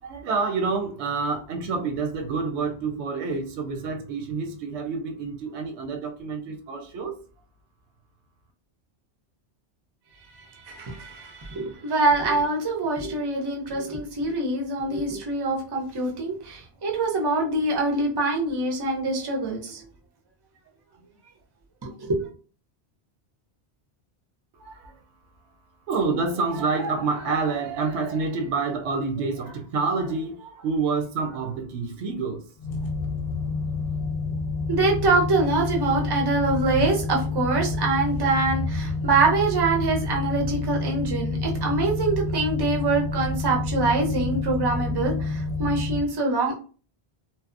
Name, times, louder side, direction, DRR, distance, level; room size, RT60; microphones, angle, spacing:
voice 1, 0.0-7.2 24.5-25.0 25.9-32.4, right 4 dB, 90° right, 0.9 m, -28 dB
voice 2, 10.3-19.9 21.8-22.3 34.7-46.5, right 3 dB, 35° right, 0.4 m, -25 dB
sound 1, 32.6-46.0, left 3 dB, 65° left, 0.7 m, -28 dB
2.7 x 2.0 x 2.4 m
omnidirectional pair, 1.1 m